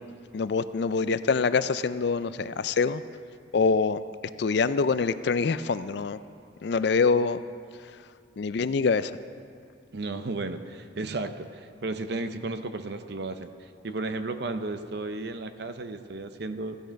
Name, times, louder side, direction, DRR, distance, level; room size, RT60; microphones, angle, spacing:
voice 1, 0.3-3.0 3.5-4.0 4.4-6.2 6.6-7.4 8.4-9.1, left 4 dB, 55° left, 13 dB, 0.4 m, -25 dB
voice 2, 9.9-16.8, right 2 dB, 55° right, 9 dB, 0.6 m, -34 dB
15.5 x 10.0 x 5.2 m, 2.3 s
head